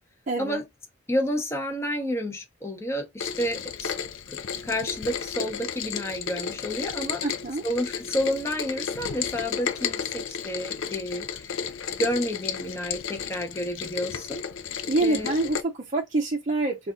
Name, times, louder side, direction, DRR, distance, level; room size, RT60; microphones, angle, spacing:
voice 1, 0.3-0.6 7.2-7.6 14.9-16.9, right 2 dB, 40° right, 0.6 m, -26 dB
voice 2, 1.1-4.0 4.3-4.4 4.6-7.2 7.6-11.6 12.0-14.4 15.0-15.3, equal, 15° left, 0.8 m, -30 dB
Rain, 3.2-15.6, left 7 dB, 75° left, 0.5 m, -33 dB
4.0 x 2.4 x 3.6 m
head